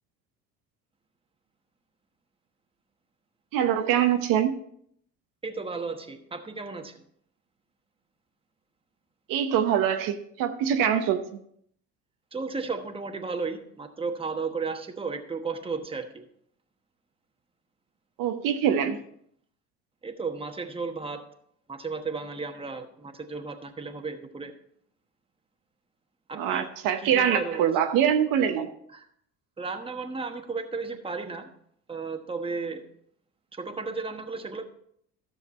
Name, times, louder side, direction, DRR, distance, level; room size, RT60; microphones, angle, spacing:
voice 1, 3.5-4.6 9.3-11.4 18.2-19.0 26.3-28.7, right 9 dB, 70° right, 7 dB, 0.9 m, -24 dB
voice 2, 5.4-7.0 12.3-16.2 20.0-21.2 21.7-24.5 26.3-26.7 27.0-27.6 28.9-29.0 29.6-31.5 31.9-32.8 33.5-34.6, right 4 dB, 15° right, 6 dB, 1.2 m, -34 dB
13.0 x 6.5 x 4.2 m, 0.69 s
supercardioid pair, 80°, 35 cm